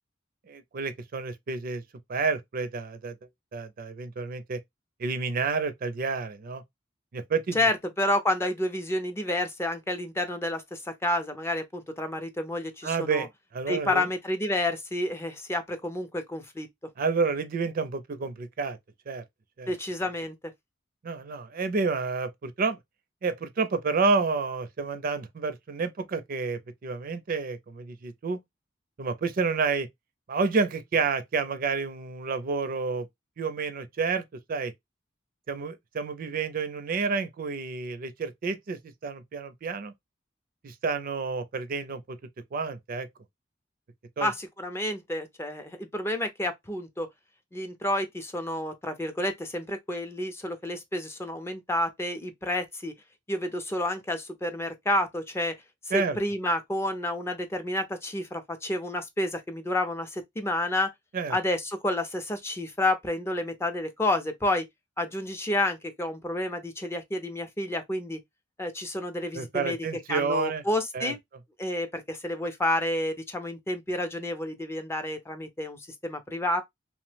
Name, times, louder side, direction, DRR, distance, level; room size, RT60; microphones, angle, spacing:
voice 1, 0.5-1.8 2.1-3.1 3.5-4.6 5.0-6.6 7.1-7.6 12.8-13.3 13.5-14.1 17.0-18.8 19.1-19.2 19.6-19.7 21.0-22.8 23.2-28.4 29.0-29.9 30.3-33.1 33.4-34.2 34.5-34.7 35.5-39.9 40.6-42.2 42.5-43.1 44.2-44.3 55.9-56.2 61.1-61.4 69.3-70.6 70.9-71.1, right 4 dB, 50° right, 0.4 m, -29 dB
voice 2, 7.5-13.3 13.7-16.7 19.7-20.4 44.2-47.1 47.5-52.9 53.3-55.5 55.9-60.9 61.3-64.7 65.0-68.2 68.6-69.8 70.1-71.2 71.6-76.6, left 1 dB, 15° left, 0.4 m, -30 dB
2.9 x 2.0 x 3.2 m
head